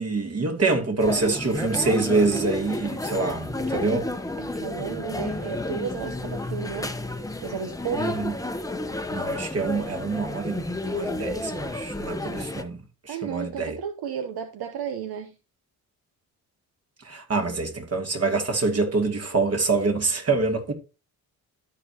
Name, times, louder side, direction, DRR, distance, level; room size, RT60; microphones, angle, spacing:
voice 1, 0.0-4.1 8.0-8.3 9.1-13.8 17.0-20.7, right 3 dB, 40° right, 2.3 m, -26 dB
sound 1, 1.0-12.6, left 2 dB, 10° left, 0.9 m, -31 dB
voice 2, 4.4-6.9 7.4-8.2 13.1-15.3, right 8 dB, 70° right, 0.9 m, -33 dB
13.0 x 5.0 x 2.8 m
supercardioid pair, 60°, 39 cm